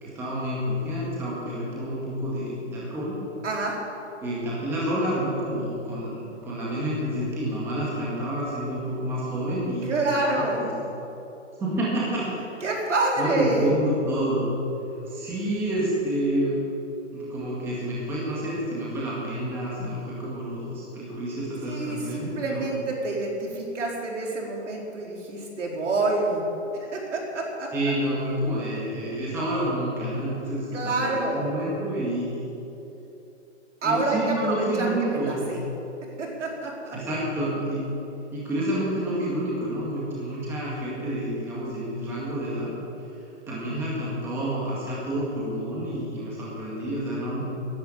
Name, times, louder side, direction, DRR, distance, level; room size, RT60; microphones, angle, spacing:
voice 1, 0.0-3.2 4.2-10.7 11.6-12.6 13.2-14.6 15.1-16.6 17.1-22.7 27.7-32.4 33.8-35.4 36.9-37.8 38.3-42.7 43.5-47.6, right 1 dB, 5° right, -7 dB, 1.9 m, -29 dB
voice 2, 3.4-3.8 9.9-10.7 12.6-13.7 21.7-26.4 26.9-27.7 30.7-31.5 33.8-35.6 36.2-37.0, right 2 dB, 70° right, -1 dB, 4.4 m, -27 dB
15.5 x 10.5 x 8.6 m, 2.9 s
hypercardioid pair, 175°, 38 cm